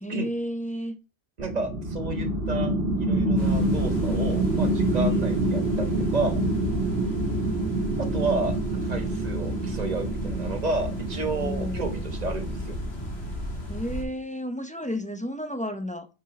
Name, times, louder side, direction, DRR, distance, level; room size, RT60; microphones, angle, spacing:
voice 1, 0.0-1.0 11.3-12.0 13.7-16.1, equal, 10° left, 0.6 m, -32 dB
voice 2, 1.4-6.4 8.0-8.5 8.8-12.8, right 3 dB, 40° right, 1.4 m, -31 dB
sound 1, 1.4-13.5, right 2 dB, 60° right, 1.7 m, -27 dB
sound 2, 3.4-14.0, left 1 dB, 70° left, 2.1 m, -34 dB
5.9 x 5.4 x 4.7 m
omnidirectional pair, 1.1 m